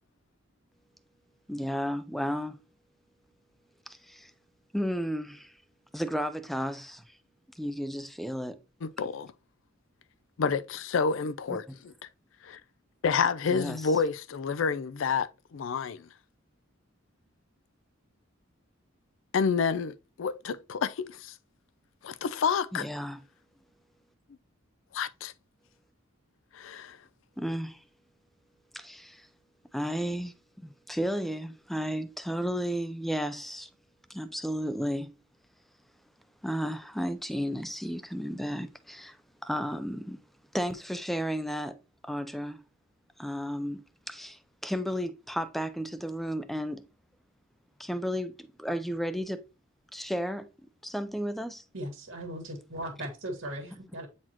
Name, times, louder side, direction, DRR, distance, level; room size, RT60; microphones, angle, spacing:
voice 1, 1.5-2.6 3.9-4.3 4.7-5.5 5.9-7.2 7.5-8.6 11.5-11.8 13.5-13.8 22.7-23.2 27.4-27.8 28.7-29.3 29.7-33.7 34.1-35.1 36.4-39.2 39.4-40.2 40.5-41.8 42.0-42.6 43.2-46.9 47.8-49.4 49.9-50.5 50.8-51.6, equal, ahead, 0.5 m, -33 dB
voice 2, 8.8-9.3 10.4-11.9 12.4-12.6 13.0-16.1 19.3-21.3 22.0-22.9 24.9-25.3 26.5-27.0, left 5 dB, 65° left, 0.4 m, -29 dB
voice 3, 51.7-54.1, right 1 dB, 65° right, 1.7 m, -38 dB
9.0 x 4.2 x 2.9 m
head